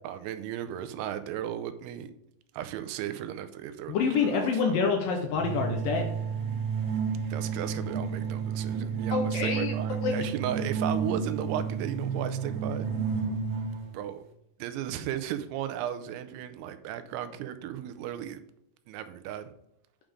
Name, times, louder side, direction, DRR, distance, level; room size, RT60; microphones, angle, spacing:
voice 1, 0.0-2.1 2.5-4.8 7.3-12.9 13.9-14.2 14.6-18.4 18.9-19.5, right 11 dB, 85° right, 10 dB, 2.6 m, -35 dB
voice 2, 3.9-6.1 9.1-9.7 10.0-10.2, left 5 dB, 75° left, 3 dB, 2.1 m, -27 dB
sound 1, 5.4-14.0, right 6 dB, 60° right, 2.4 m, -31 dB
8.9 x 5.0 x 3.6 m, 0.81 s
omnidirectional pair, 4.7 m